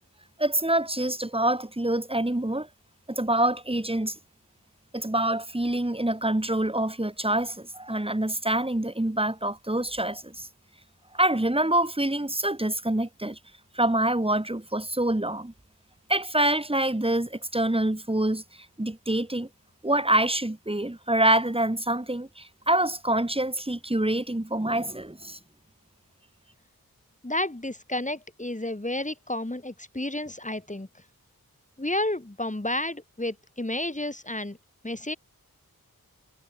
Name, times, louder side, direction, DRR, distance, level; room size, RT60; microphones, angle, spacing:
voice 1, 0.4-2.7 3.1-4.2 4.9-10.5 11.1-13.4 13.7-15.5 16.1-18.4 18.8-19.5 19.8-25.4, right 1 dB, 15° right, 2.3 m, -26 dB
voice 2, 27.2-30.9 31.8-34.6 34.8-35.2, left 1 dB, 20° left, 2.8 m, -31 dB
wide cardioid pair, 40°, 37 cm